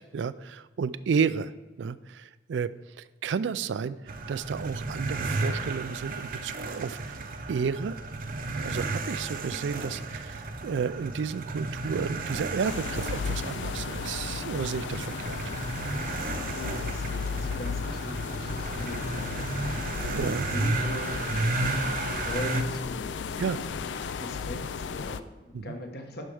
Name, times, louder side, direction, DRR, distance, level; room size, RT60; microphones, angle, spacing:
voice 1, 0.1-1.5 1.8-4.0 4.3-7.2 7.5-8.0 8.6-15.4 19.9-20.5 23.4-23.6 25.5-25.7, right 6 dB, 75° right, 16 dB, 0.4 m, -32 dB
sound 1, 4.1-22.6, right 2 dB, 50° right, 0.7 m, -33 dB
sound 2, 12.6-25.2, left 5 dB, 75° left, 0.4 m, -35 dB
voice 2, 16.5-23.9 24.2-26.2, left 1 dB, 60° left, 3 dB, 1.3 m, -40 dB
11.5 x 4.5 x 4.9 m, 1.2 s
head